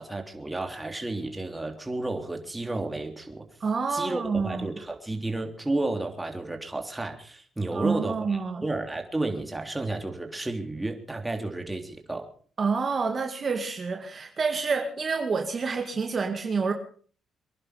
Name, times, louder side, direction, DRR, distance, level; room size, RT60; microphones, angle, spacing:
voice 1, 0.0-3.4 3.9-12.3, right 2 dB, 10° right, 4 dB, 3.3 m, -32 dB
voice 2, 3.6-4.7 7.7-8.6 12.6-16.7, right 4 dB, 40° right, 4 dB, 2.1 m, -28 dB
25.0 x 11.0 x 5.1 m, 0.44 s
cardioid pair, 90°, 0 cm